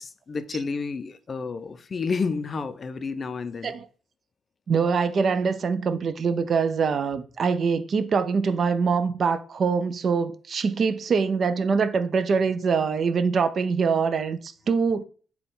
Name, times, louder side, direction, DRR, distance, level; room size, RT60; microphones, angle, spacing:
voice 1, 0.0-3.7, left 4 dB, 40° left, 0.4 m, -30 dB
voice 2, 4.7-15.0, right 5 dB, 50° right, 0.3 m, -24 dB
4.0 x 2.3 x 3.6 m
cardioid pair, 90°, 0 cm